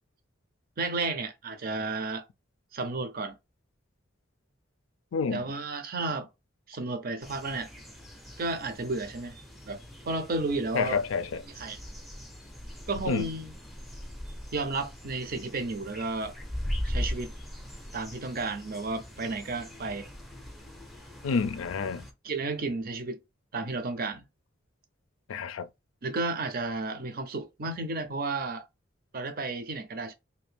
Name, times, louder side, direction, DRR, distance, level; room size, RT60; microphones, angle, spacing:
voice 1, 0.8-2.3 2.7-3.4 5.3-6.3 6.7-7.7 8.4-9.4 9.7-9.8 10.1-11.0 11.5-11.8 12.9-13.5 14.5-16.3 16.8-17.3 17.9-20.1 22.2-23.2 23.5-24.2 26.0-28.6 29.1-30.1, right 3 dB, 45° right, 0.5 m, -32 dB
voice 2, 5.1-5.4 10.7-11.4 13.1-13.3 21.2-22.1 25.3-25.7, left 5 dB, 85° left, 0.4 m, -29 dB
sound 1, 7.2-22.1, equal, ahead, 0.5 m, -40 dB
2.7 x 2.5 x 3.3 m
head